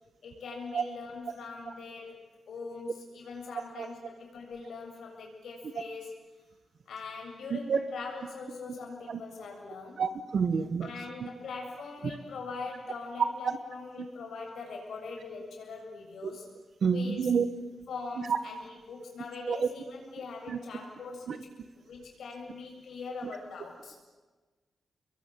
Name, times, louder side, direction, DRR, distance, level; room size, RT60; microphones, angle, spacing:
voice 1, 0.2-2.2 2.5-6.1 6.9-10.0 10.8-16.5 16.9-17.3 17.9-21.3 21.9-24.0, left 4 dB, 75° left, 0 dB, 7.3 m, -42 dB
voice 2, 10.0-10.9 16.8-17.5 19.5-19.6, right 6 dB, 55° right, 12 dB, 1.5 m, -27 dB
27.0 x 22.5 x 9.3 m, 1.3 s
wide cardioid pair, 165°, 0 cm